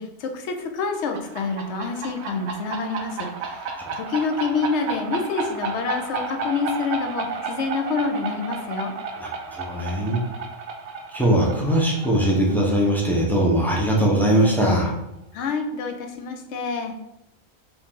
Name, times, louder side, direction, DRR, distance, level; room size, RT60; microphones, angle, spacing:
voice 1, 0.0-8.9 15.3-16.9, left 4 dB, 65° left, 5 dB, 0.8 m, -27 dB
sound 1, 0.9-14.3, right 4 dB, 65° right, 0.7 m, -33 dB
voice 2, 9.2-10.2 11.1-14.9, right 1 dB, ahead, -2 dB, 0.4 m, -20 dB
4.6 x 2.7 x 3.6 m, 0.88 s
omnidirectional pair, 1.4 m